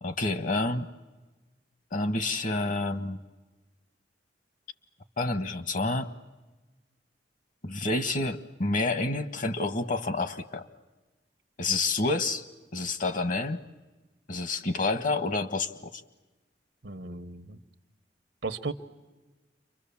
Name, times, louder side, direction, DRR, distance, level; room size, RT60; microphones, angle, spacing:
voice 1, 0.0-0.9 1.9-3.2 5.2-6.1 7.6-10.7 11.6-12.4 12.7-13.6 14.3-16.0, left 2 dB, 50° left, 11 dB, 1.4 m, -29 dB
voice 2, 16.8-17.6 18.4-18.7, right 3 dB, 85° right, 8 dB, 1.1 m, -35 dB
30.0 x 24.5 x 7.2 m, 1.2 s
head